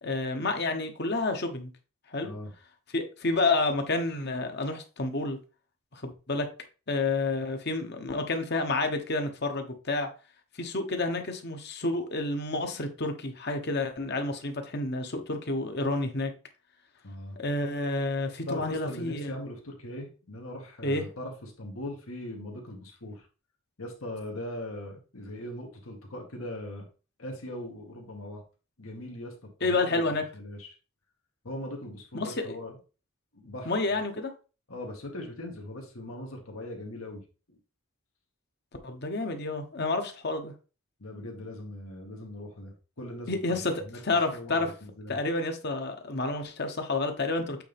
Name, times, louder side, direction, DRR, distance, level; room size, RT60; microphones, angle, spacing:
voice 1, 0.0-1.7 2.1-2.3 2.9-5.4 5.9-6.5 6.9-10.1 10.5-16.3 17.4-19.3 20.8-21.0 29.6-30.2 32.1-32.6 33.7-34.3 38.8-40.5 43.3-43.7 44.0-44.7 45.1-47.6, left 2 dB, 50° left, 6 dB, 1.2 m, -29 dB
voice 2, 17.0-17.4 18.5-23.3 23.8-26.9 27.2-28.4 28.8-30.0 30.3-30.7 31.4-32.7 33.3-33.7 34.7-37.6 41.0-44.0 44.3-45.2, left 1 dB, 80° left, 1 dB, 1.9 m, -40 dB
8.3 x 4.1 x 3.5 m, 0.34 s
head